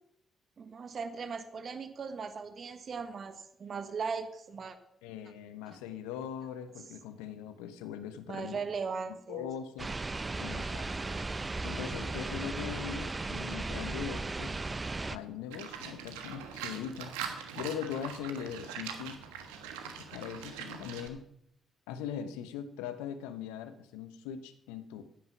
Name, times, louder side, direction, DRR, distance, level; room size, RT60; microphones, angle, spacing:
voice 1, 0.6-4.8 5.7-5.8 8.3-9.5, right 5 dB, 50° right, 9 dB, 1.4 m, -38 dB
voice 2, 5.0-8.6 9.3-9.9 10.4-10.9 11.6-14.6 15.1-17.1 17.5-19.2 20.0-21.2 21.9-25.0, left 8 dB, 80° left, 11 dB, 1.0 m, -40 dB
sound 1, 9.8-15.2, right 3 dB, 30° right, 0.8 m, -36 dB
Livestock farm animals working animals, 15.5-21.1, right 8 dB, 80° right, 1.4 m, -42 dB
14.5 x 9.6 x 6.0 m, 0.74 s
hypercardioid pair, 40°, 0 cm